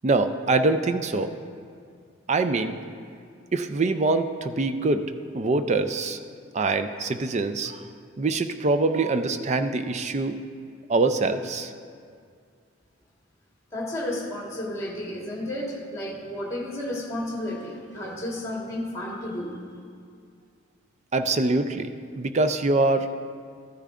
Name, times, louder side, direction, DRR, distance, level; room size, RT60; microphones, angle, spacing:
voice 1, 0.0-1.3 2.3-2.8 3.5-5.1 5.3-6.2 6.5-7.8 8.2-10.4 10.9-11.7 21.1-21.9 22.2-23.1, right 3 dB, 35° right, 9 dB, 0.4 m, -24 dB
voice 2, 13.7-19.6, left 1 dB, 15° left, -2 dB, 1.6 m, -32 dB
14.0 x 10.0 x 2.5 m, 2.2 s
head